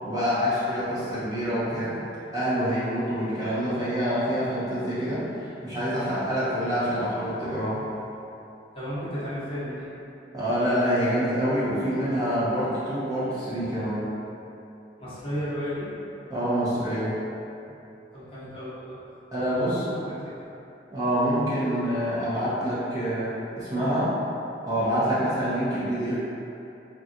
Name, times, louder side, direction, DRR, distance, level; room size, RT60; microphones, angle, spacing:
voice 1, 0.0-2.0 2.3-7.8 10.3-14.0 16.3-17.1 19.3-20.0 20.9-24.2 24.6-26.3, equal, 20° right, -12 dB, 0.8 m, -26 dB
voice 2, 8.7-9.9 15.0-15.9 18.1-19.0 19.4-20.3 24.8-24.9, equal, 30° left, -11 dB, 0.8 m, -34 dB
4.1 x 2.4 x 2.4 m, 2.8 s
head